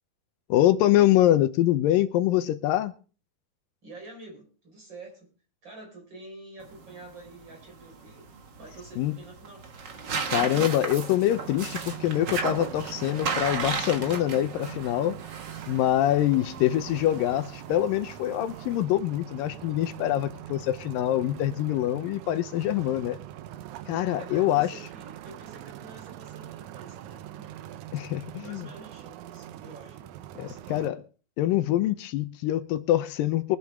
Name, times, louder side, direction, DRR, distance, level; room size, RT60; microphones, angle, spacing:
voice 1, 0.5-2.9 9.0-9.2 10.3-15.2 15.7-23.2 23.9-24.7 27.9-28.7 30.4-31.0 31.4-33.6, left 13 dB, 80° left, 2.5 m, -25 dB
voice 2, 3.8-5.3 5.6-8.3 8.6-9.7 24.0-27.6 28.3-30.2 30.4-30.8, right 2 dB, 30° right, 5.3 m, -48 dB
sound 1, 6.6-18.8, right 5 dB, 50° right, 1.3 m, -35 dB
sound 2, 11.3-30.9, right 12 dB, 75° right, 1.9 m, -43 dB
22.5 x 9.0 x 3.5 m
omnidirectional pair, 4.0 m